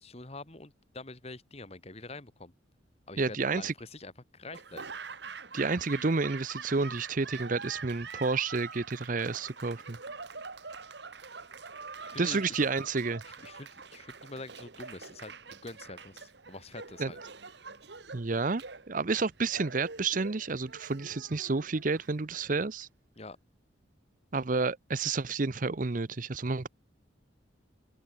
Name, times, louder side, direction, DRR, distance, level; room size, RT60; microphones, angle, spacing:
voice 1, 0.0-2.5 3.1-4.8 12.0-12.6 13.3-17.2 23.2-23.4, left 2 dB, 35° left, 1.8 m, -45 dB
voice 2, 3.2-3.7 5.5-10.0 12.2-13.2 17.0-17.1 18.1-22.9 24.3-26.7, right 4 dB, 45° right, 0.7 m, -30 dB
Laughter / Applause, 4.5-22.6, right 5 dB, 60° right, 1.6 m, -45 dB
open air
head